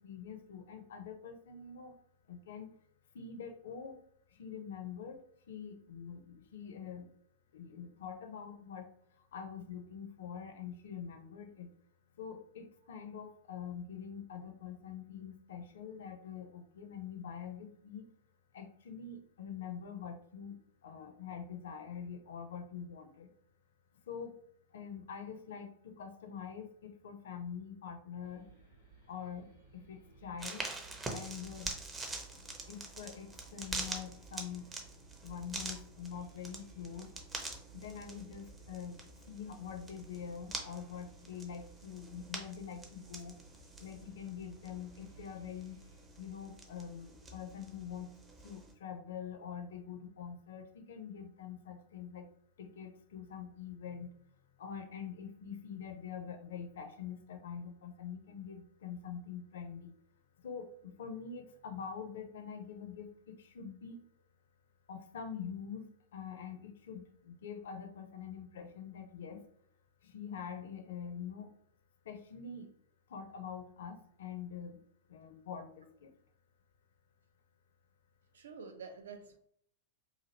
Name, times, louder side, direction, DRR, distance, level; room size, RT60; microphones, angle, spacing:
voice 1, 0.0-1.9 2.3-2.7 3.1-4.0 4.4-5.2 5.5-7.1 7.5-8.9 9.3-11.7 12.2-18.0 18.5-20.5 20.8-23.3 24.1-24.3 24.7-28.4 29.1-29.5 29.7-30.6 31.1-31.7 32.7-34.6 35.2-37.1 37.7-39.0 39.3-43.4 43.8-45.7 46.2-48.1 48.4-52.3 52.6-54.1 54.6-59.9 60.4-64.0 64.9-65.9 66.1-69.4 70.1-71.5 72.1-72.7 73.1-74.8 75.1-76.1, left 7 dB, 60° left, 0.4 m, -45 dB
sound 1, 28.2-46.1, right 4 dB, 90° right, 0.9 m, -60 dB
sound 2, 30.4-48.7, right 2 dB, 15° right, 0.6 m, -46 dB
voice 2, 78.3-79.4, right 5 dB, 65° right, 0.4 m, -48 dB
2.8 x 2.5 x 2.8 m
figure-of-eight pair, 90°, 0 cm